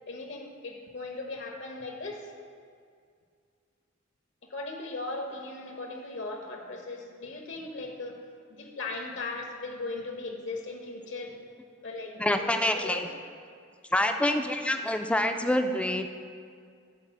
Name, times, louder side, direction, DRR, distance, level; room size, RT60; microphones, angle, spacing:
voice 1, 0.1-2.3 4.5-8.2 8.5-11.3 11.8-12.4 12.7-13.0, left 3 dB, 65° left, 3 dB, 0.9 m, -38 dB
voice 2, 12.2-13.1 13.9-16.1, left 1 dB, 5° left, 6 dB, 0.3 m, -26 dB
8.9 x 4.2 x 7.2 m, 2.2 s
head